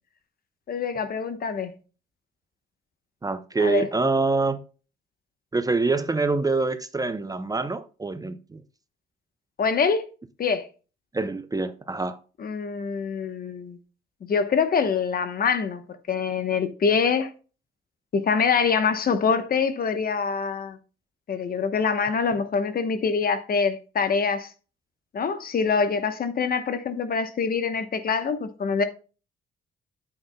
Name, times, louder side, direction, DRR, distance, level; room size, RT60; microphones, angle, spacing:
voice 1, 0.7-1.7 3.6-3.9 9.6-10.0 10.4-10.7 12.4-13.8 14.3-15.8 16.1-17.3 18.1-20.8 21.3-24.5 25.1-28.8, left 5 dB, 50° left, 1.0 m, -25 dB
voice 2, 3.2-4.6 5.5-8.6 11.1-12.2, right 3 dB, 20° right, 0.6 m, -25 dB
9.4 x 7.9 x 2.2 m
cardioid pair, 90°, 20 cm